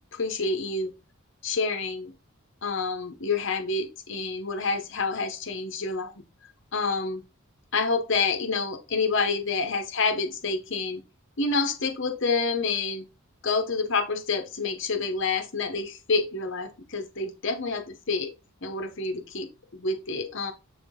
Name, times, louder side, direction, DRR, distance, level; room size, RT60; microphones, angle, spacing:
voice 1, 0.1-0.9 1.4-2.1 2.6-6.1 6.7-7.2 7.7-11.0 11.4-13.0 13.4-18.3 18.6-20.5, left 4 dB, 60° left, 1.0 m, -28 dB
7.0 x 3.7 x 3.7 m
head